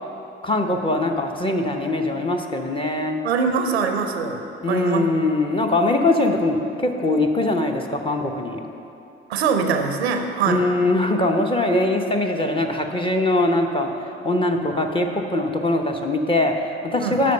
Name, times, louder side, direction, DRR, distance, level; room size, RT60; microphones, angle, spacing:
voice 1, 0.4-3.2 4.6-8.6 10.5-17.3, left 2 dB, 15° left, 3 dB, 1.0 m, -22 dB
voice 2, 3.2-4.4 4.7-5.0 9.3-10.6 17.0-17.2, right 5 dB, 80° right, 6 dB, 0.6 m, -23 dB
12.0 x 4.5 x 6.7 m, 2.8 s
figure-of-eight pair, 45°, 31 cm